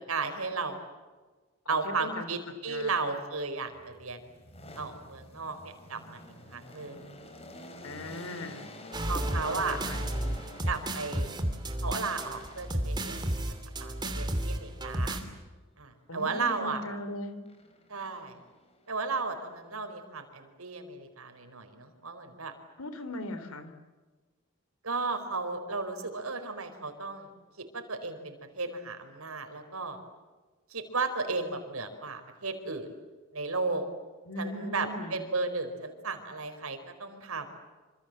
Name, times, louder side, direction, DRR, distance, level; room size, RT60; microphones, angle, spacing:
voice 1, 0.1-0.8 1.7-4.3 4.8-6.2 6.5-7.1 9.1-9.8 10.7-11.3 11.8-13.3 13.8-15.2 15.8-16.8 17.9-18.4 18.9-22.5 24.8-27.3 27.7-30.0 30.7-32.9 33.3-33.8 34.4-37.5, right 4 dB, 85° right, 7 dB, 4.6 m, -34 dB
voice 2, 1.7-2.3 2.7-3.2 7.8-8.7 9.1-10.4 16.1-17.4 22.8-23.7 34.3-35.3, left 1 dB, 85° left, 10 dB, 3.6 m, -39 dB
sound 1, 3.7-11.3 12.2-13.0 16.2-17.0 17.5-19.8, left 1 dB, 30° left, 4.5 m, -49 dB
sound 2, 8.9-15.2, right 1 dB, 20° right, 2.8 m, -32 dB
27.0 x 26.5 x 7.8 m, 1.3 s
head